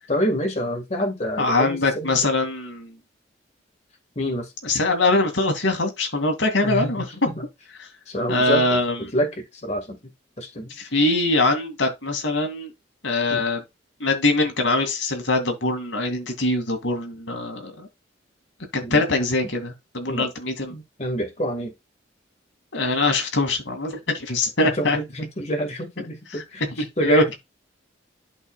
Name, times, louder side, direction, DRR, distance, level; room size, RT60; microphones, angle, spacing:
voice 1, 0.1-2.1 4.2-4.5 6.6-6.9 8.1-8.7 9.0-10.0 10.4-10.7 13.3-13.4 18.8-19.0 20.1-20.3 20.7-21.7 24.6-26.6 27.0-27.3, equal, 35° left, 1.8 m, -26 dB
voice 2, 1.4-2.9 4.6-7.1 7.8-7.9 8.3-9.0 10.7-12.7 13.0-13.6 14.0-17.9 18.7-20.7 22.7-25.0 26.3-26.4 26.8-27.2, left 2 dB, 80° left, 2.3 m, -23 dB
11.0 x 5.4 x 2.3 m
head